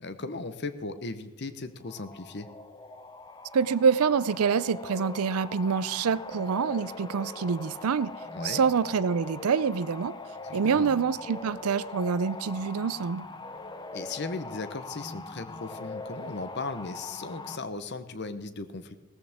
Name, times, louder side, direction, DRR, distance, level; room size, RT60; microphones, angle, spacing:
voice 1, 0.0-2.5 8.3-8.6 10.4-10.9 13.9-18.9, left 3 dB, 50° left, 11 dB, 0.9 m, -37 dB
sound 1, 1.8-17.6, left 3 dB, 20° left, 0.6 m, -42 dB
voice 2, 3.5-8.1 8.4-10.1 10.5-13.3, right 6 dB, 80° right, 18 dB, 0.5 m, -26 dB
17.0 x 14.0 x 3.6 m, 1.2 s
head